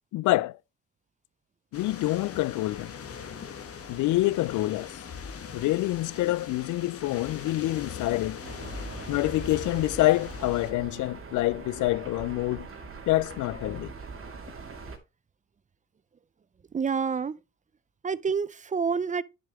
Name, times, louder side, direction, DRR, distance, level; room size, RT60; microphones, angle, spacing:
voice 1, 0.1-0.6 1.7-2.9 3.9-5.0 5.5-8.4 9.1-12.7 13.1-13.9, left 18 dB, 80° left, 0.4 m, -26 dB
sound 1, 1.7-10.7, left 6 dB, 50° left, 1.6 m, -41 dB
sound 2, 8.4-15.0, right 4 dB, 45° right, 2.5 m, -42 dB
voice 2, 16.7-17.4 18.0-19.2, right 6 dB, 25° right, 0.4 m, -28 dB
10.5 x 6.9 x 3.2 m
cardioid pair, 90°, 30 cm